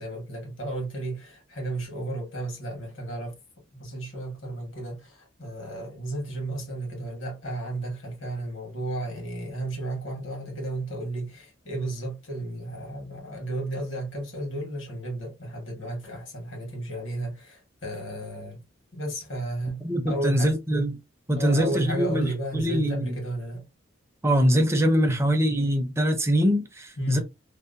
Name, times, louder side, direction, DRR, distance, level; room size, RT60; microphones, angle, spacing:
voice 1, 0.0-3.4 3.7-18.6 18.9-20.6 21.3-23.7 25.0-25.2 27.0-27.2, right 1 dB, 70° left, 1.3 m, -33 dB
voice 2, 19.8-21.0 21.3-23.1 24.2-27.2, equal, 15° right, 0.4 m, -23 dB
2.7 x 2.0 x 2.5 m
head